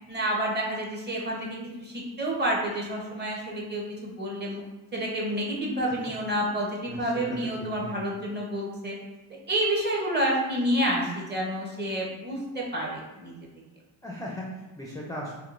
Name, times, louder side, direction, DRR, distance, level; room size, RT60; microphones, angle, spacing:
voice 1, 0.1-4.6 4.9-8.9 9.5-13.3, right 1 dB, 25° right, -2 dB, 0.8 m, -29 dB
voice 2, 6.9-8.1 14.0-15.3, equal, 10° left, -3 dB, 0.3 m, -38 dB
3.6 x 2.7 x 2.5 m, 1.1 s
cardioid pair, 95°, 45 cm